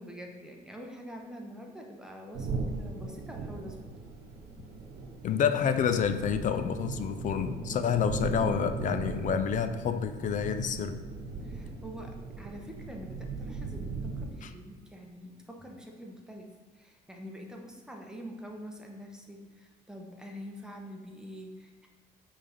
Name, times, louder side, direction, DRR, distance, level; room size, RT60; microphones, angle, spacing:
voice 1, 0.0-3.9 11.4-21.9, equal, 5° right, 1 dB, 0.9 m, -45 dB
sound 1, 2.3-14.3, right 3 dB, 70° right, 1.0 m, -38 dB
voice 2, 5.2-11.0 14.4-14.5, left 7 dB, 50° left, 9 dB, 0.4 m, -28 dB
5.3 x 3.4 x 5.3 m, 1.5 s
cardioid pair, 110°, 17 cm